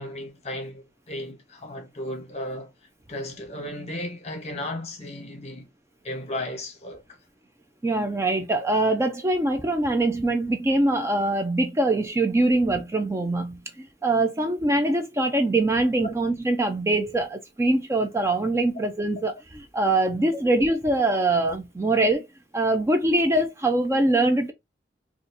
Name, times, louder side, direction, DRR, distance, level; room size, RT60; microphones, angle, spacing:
voice 1, 0.0-2.7 3.1-5.7 6.0-7.0 16.0-16.1, left 1 dB, 40° left, 1.0 m, -35 dB
voice 2, 7.8-22.3 22.5-24.5, right 2 dB, 15° right, 0.4 m, -23 dB
3.9 x 2.5 x 2.6 m
head